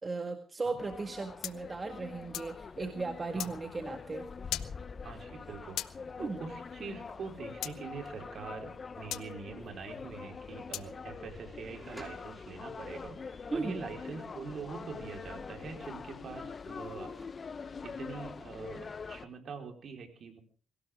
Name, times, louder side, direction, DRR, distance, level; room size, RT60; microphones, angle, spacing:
voice 1, 0.0-4.3 6.2-6.4 13.5-13.9, right 3 dB, 30° right, 6 dB, 1.8 m, -36 dB
sound 1, 0.8-19.3, left 5 dB, 40° left, 0.9 m, -44 dB
sound 2, 1.4-2.6 3.4-3.5 4.5-4.7 5.8-5.9 7.6-7.8 9.1-9.3 10.7-10.9, left 13 dB, 85° left, 0.7 m, -37 dB
voice 2, 5.0-5.8 6.2-17.1 17.8-20.4, right 5 dB, 55° right, 4 dB, 4.4 m, -44 dB
sound 3, 5.2-6.0 7.0-8.3 11.3-12.9 15.1-15.8 16.0-17.8, right 1 dB, 10° right, 5.3 m, -57 dB
22.0 x 17.0 x 3.7 m, 0.42 s
cardioid pair, 90°, 0 cm